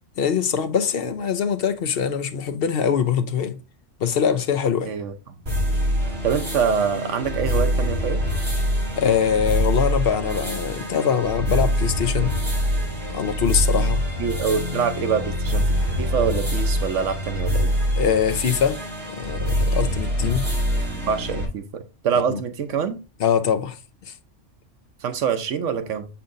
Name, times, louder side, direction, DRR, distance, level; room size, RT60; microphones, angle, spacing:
voice 1, 0.2-3.6 4.0-4.9 9.0-12.3 13.1-14.0 18.0-18.8 19.1-20.4 22.1-22.4 23.2-23.8 24.1-24.2, left 7 dB, 60° left, 0.8 m, -23 dB
sound 1, 5.5-21.5, equal, 55° right, 2.9 m, -24 dB
voice 2, 6.2-8.2 14.2-15.6 16.0-17.7 20.9-23.0 25.0-26.1, right 7 dB, 85° right, 1.2 m, -25 dB
6.8 x 5.6 x 2.6 m
omnidirectional pair, 1.2 m